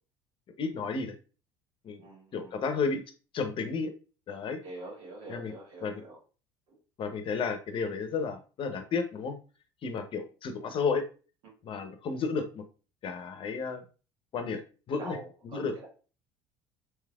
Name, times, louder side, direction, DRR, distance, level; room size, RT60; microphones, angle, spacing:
voice 1, 0.6-1.1 1.8-2.0 2.3-3.0 3.3-3.9 4.3-4.6 5.3-5.5 5.8-6.0 7.0-9.3 9.8-11.0 11.6-12.6 13.0-13.8 14.3-14.6 14.9-15.2 15.5-15.7, left 5 dB, 45° left, 8 dB, 0.7 m, -32 dB
voice 2, 2.0-2.5 4.6-6.2 6.7-6.8 14.9-15.9, right 2 dB, 75° right, -4 dB, 1.3 m, -44 dB
3.3 x 3.0 x 2.3 m, 0.35 s
hypercardioid pair, 75°, 12 cm